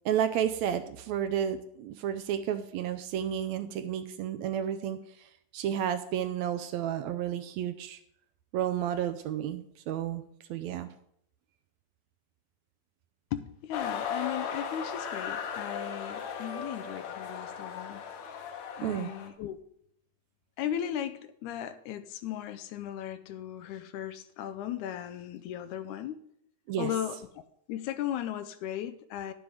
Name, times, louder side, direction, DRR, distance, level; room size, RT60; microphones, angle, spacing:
voice 1, 0.1-5.3 5.5-8.0 8.5-10.2 10.5-10.9 18.8-19.1 26.7-26.9, right 10 dB, 80° right, 10 dB, 1.7 m, -31 dB
voice 2, 13.3-18.0 18.7-19.6 20.6-26.2 26.8-27.2 27.7-29.3, left 10 dB, 85° left, 12 dB, 2.1 m, -36 dB
sound 1, 13.7-19.3, left 7 dB, 70° left, 2.2 m, -37 dB
10.5 x 7.9 x 4.9 m, 0.71 s
omnidirectional pair, 3.5 m